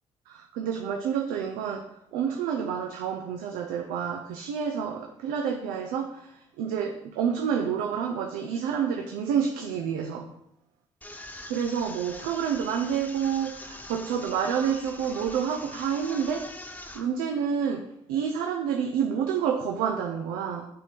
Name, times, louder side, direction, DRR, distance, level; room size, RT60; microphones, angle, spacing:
voice 1, 0.3-10.3 11.5-16.5 16.9-20.7, right 7 dB, 85° right, 3 dB, 0.5 m, -29 dB
sound 1, 11.0-17.0, left 1 dB, 10° left, 1.0 m, -43 dB
6.2 x 3.6 x 4.4 m, 0.78 s
hypercardioid pair, 55°, 15 cm